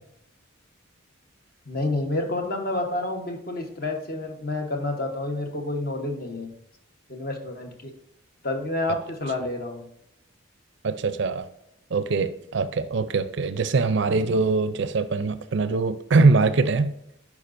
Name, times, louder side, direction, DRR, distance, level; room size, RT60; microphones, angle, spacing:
voice 1, 1.7-6.5 7.1-7.9 8.4-9.8, left 2 dB, 45° left, 1.0 m, -29 dB
voice 2, 10.8-11.5 11.9-16.9, right 3 dB, 60° right, 0.4 m, -22 dB
11.0 x 4.8 x 2.6 m
head